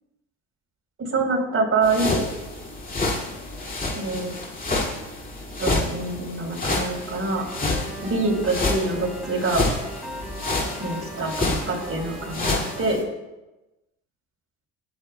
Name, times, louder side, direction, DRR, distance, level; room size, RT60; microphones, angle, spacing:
voice 1, 1.0-2.2 3.9-4.3 5.6-7.4 8.0-9.7 10.8-13.0, right 3 dB, 40° right, 0 dB, 4.2 m, -25 dB
sound 1, 1.8-13.0, left 2 dB, 25° left, 2.5 m, -29 dB
sound 2, 7.4-12.8, equal, ahead, 3.4 m, -38 dB
21.5 x 8.6 x 2.3 m, 1.1 s
supercardioid pair, 70°, 36 cm